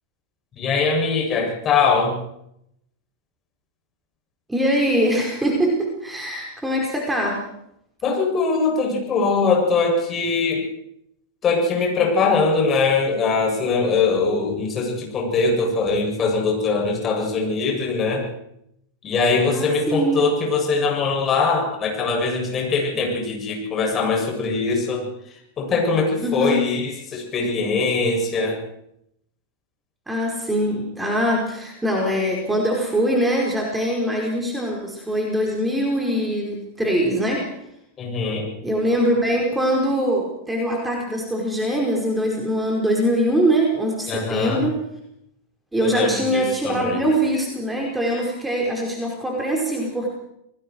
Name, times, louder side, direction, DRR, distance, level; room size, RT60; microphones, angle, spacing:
voice 1, 0.6-2.2 8.0-10.6 11.4-18.3 19.0-25.0 25.6-28.6 38.0-38.5 44.1-44.7 45.8-47.0, left 4 dB, 25° left, 0 dB, 7.6 m, -22 dB
voice 2, 4.5-7.4 19.5-20.2 26.2-26.6 30.1-37.6 38.6-44.8 45.7-50.1, equal, 5° right, -1 dB, 4.9 m, -22 dB
28.5 x 20.0 x 4.7 m, 0.78 s
figure-of-eight pair, 90°, 0 cm